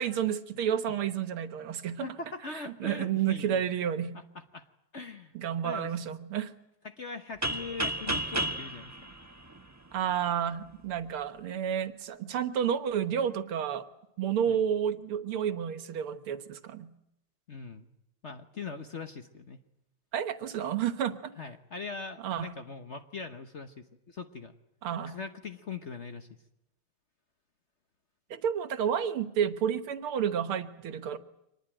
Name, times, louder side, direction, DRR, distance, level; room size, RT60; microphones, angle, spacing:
voice 1, 0.0-2.1 2.5-4.2 5.3-6.5 9.9-13.8 14.2-16.9 20.1-21.3 22.2-22.5 24.8-25.2 28.3-31.2, right 8 dB, 90° right, 10 dB, 2.2 m, -30 dB
voice 2, 2.0-3.6 4.5-4.7 4.9-5.3 5.6-5.9 6.8-8.9 14.5-14.6 17.5-17.9 18.2-19.6 21.4-24.5 25.1-26.3, left 4 dB, 45° left, 7 dB, 1.0 m, -41 dB
sound 1, 7.4-10.2, right 1 dB, 10° right, 0.9 m, -33 dB
24.5 x 20.0 x 9.0 m, 0.83 s
omnidirectional pair, 2.3 m